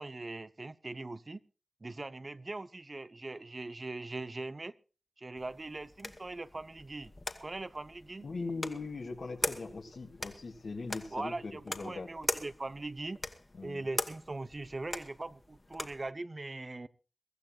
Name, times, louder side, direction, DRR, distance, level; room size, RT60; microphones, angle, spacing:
voice 1, 0.0-1.4 1.8-4.8 5.2-7.1 7.4-8.3 11.1-13.2 13.6-16.9, right 2 dB, 45° right, 0.9 m, -41 dB
sound 1, 5.4-16.1, left 2 dB, 35° left, 1.9 m, -42 dB
voice 2, 8.2-12.1 13.5-13.9, left 3 dB, 80° left, 2.9 m, -40 dB
23.0 x 14.5 x 2.5 m
cardioid pair, 50°, 0 cm